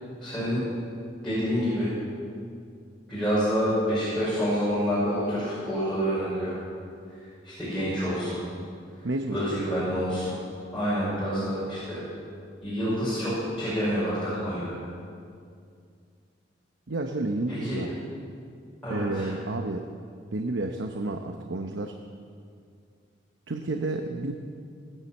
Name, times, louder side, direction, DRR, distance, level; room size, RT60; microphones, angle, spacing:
voice 1, 0.2-0.6 1.2-1.9 3.1-6.6 7.4-8.4 9.3-10.4 10.7-12.0 12.6-14.8 17.5-17.8 18.8-19.3, equal, 5° left, -12 dB, 5.5 m, -27 dB
voice 2, 9.0-9.4 16.9-18.0 18.9-19.9 20.3-21.9 23.5-24.3, right 2 dB, 75° right, 5 dB, 0.8 m, -30 dB
18.5 x 10.5 x 7.2 m, 2.3 s
head